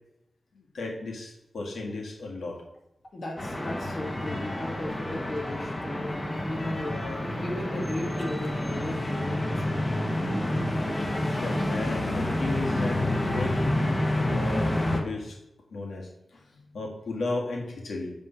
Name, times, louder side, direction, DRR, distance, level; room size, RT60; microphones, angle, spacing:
voice 1, 0.5-2.6 11.4-15.4 15.7-18.1, left 2 dB, 90° left, -1 dB, 1.8 m, -35 dB
voice 2, 3.1-9.9, left 1 dB, 55° left, 0 dB, 1.5 m, -36 dB
sound 1, 3.4-15.0, left 1 dB, 25° left, 1.4 m, -28 dB
9.3 x 3.7 x 5.8 m, 0.86 s
wide cardioid pair, 75°, 0 cm